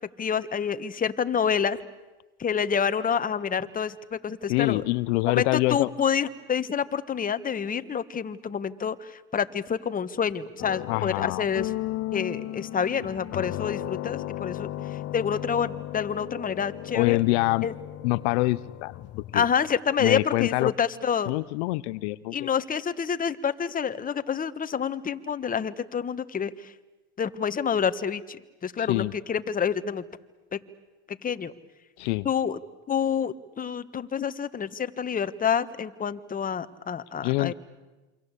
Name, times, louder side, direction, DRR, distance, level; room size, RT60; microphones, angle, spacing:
voice 1, 0.2-1.8 2.4-4.8 5.3-11.7 12.1-14.7 15.1-17.2 17.6-17.7 19.3-21.3 22.3-26.7 27.2-30.1 30.5-30.6 31.1-31.5 32.2-32.6 32.9-37.5, left 7 dB, 25° left, 12 dB, 1.5 m, -28 dB
voice 2, 4.5-5.9 10.9-11.4 16.9-17.7 18.0-18.9 19.3-19.4 20.0-20.7 21.3-22.5 28.8-29.1 32.0-32.3 37.2-37.5, left 21 dB, 70° left, 16 dB, 0.9 m, -25 dB
sound 1, 10.6-19.7, left 16 dB, 45° left, 1.0 m, -35 dB
28.0 x 25.5 x 8.3 m, 1.1 s
supercardioid pair, 105°, 35 cm